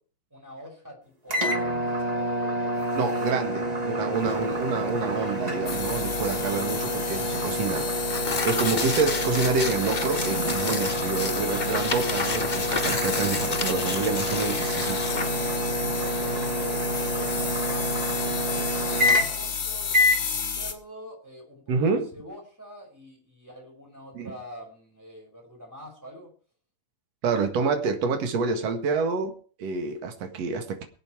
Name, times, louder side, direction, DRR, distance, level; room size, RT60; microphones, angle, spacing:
voice 1, 0.3-3.6 15.8-26.3, equal, 5° right, 0 dB, 5.8 m, -45 dB
sound 1, 1.3-19.5 19.9-20.2, equal, 30° right, 0.7 m, -28 dB
voice 2, 3.0-7.9 8.4-15.0 21.7-22.1 24.1-24.3 27.2-30.8, right 4 dB, 60° right, 6 dB, 2.9 m, -28 dB
Tearing, 4.2-18.4, left 4 dB, 75° left, 0.4 m, -33 dB
sound 2, 5.7-20.7, left 6 dB, 40° left, 2.4 m, -33 dB
23.0 x 8.5 x 4.7 m, 0.41 s
omnidirectional pair, 3.3 m